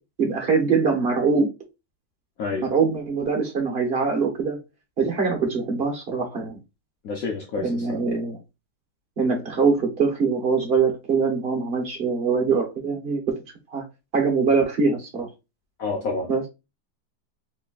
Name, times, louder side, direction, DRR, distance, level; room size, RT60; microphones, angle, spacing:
voice 1, 0.2-1.5 2.6-4.6 5.0-6.6 7.6-8.4 9.2-13.2 13.7-13.8 14.1-15.3 16.3-16.4, right 5 dB, 40° right, 0.9 m, -23 dB
voice 2, 2.4-2.7 7.0-8.0 15.8-16.3, left 3 dB, 85° left, 0.7 m, -29 dB
4.0 x 3.2 x 2.3 m
omnidirectional pair, 2.3 m